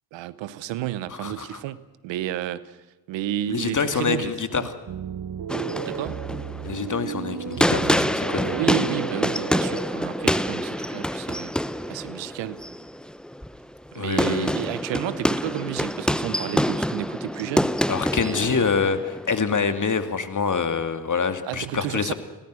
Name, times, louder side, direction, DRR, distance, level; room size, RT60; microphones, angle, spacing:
voice 1, 0.1-2.8 3.1-4.7 5.8-6.2 8.5-11.5 11.9-12.6 13.9-17.7 18.1-18.6 21.4-22.1, right 13 dB, 85° right, 1.0 m, -31 dB
voice 2, 1.2-1.6 3.5-4.7 6.6-8.5 13.9-14.5 17.9-22.1, left 5 dB, 45° left, 2.5 m, -26 dB
sound 1, 4.9-12.4, right 9 dB, 55° right, 1.2 m, -35 dB
sound 2, 5.5-20.1, equal, ahead, 1.0 m, -27 dB
27.0 x 18.5 x 6.3 m
hypercardioid pair, 45°, 44 cm